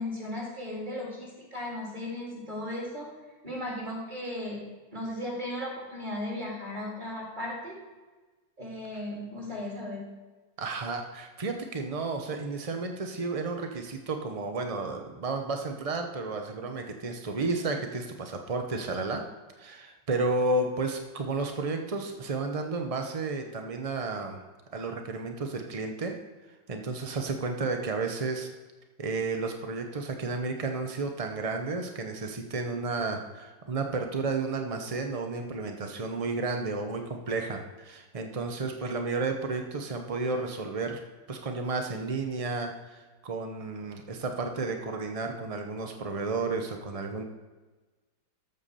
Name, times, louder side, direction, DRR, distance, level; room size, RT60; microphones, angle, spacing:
voice 1, 0.0-3.1 3.4-7.8 8.6-10.0, left 1 dB, 25° right, -4 dB, 3.4 m, -36 dB
voice 2, 10.6-19.2 19.6-24.4 24.7-26.1 26.7-28.5 29.0-41.0 41.3-47.2, right 3 dB, 60° right, 4 dB, 0.3 m, -32 dB
13.0 x 5.8 x 6.8 m, 1.2 s
omnidirectional pair, 2.1 m